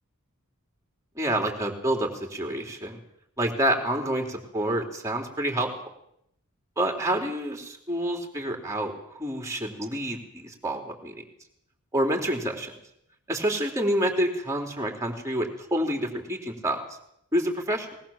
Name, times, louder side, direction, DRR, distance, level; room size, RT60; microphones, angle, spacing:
voice 1, 1.2-3.0 3.4-5.7 6.8-11.2 11.9-12.7 13.3-16.8 17.3-18.0, right 1 dB, 15° right, 2 dB, 3.7 m, -28 dB
20.5 x 20.0 x 7.4 m, 0.74 s
head